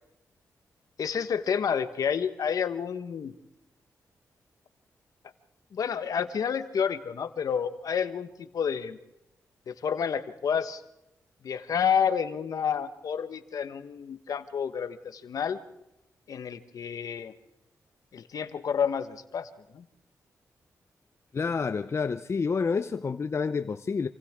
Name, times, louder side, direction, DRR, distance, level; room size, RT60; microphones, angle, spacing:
voice 1, 1.0-3.3 5.7-9.0 9.7-10.8 11.4-15.6 16.3-17.3 18.1-19.9, left 7 dB, 70° left, 1.3 m, -29 dB
voice 2, 21.3-24.1, left 5 dB, 45° left, 0.7 m, -28 dB
27.5 x 26.0 x 3.7 m
cardioid pair, 60°, 6 cm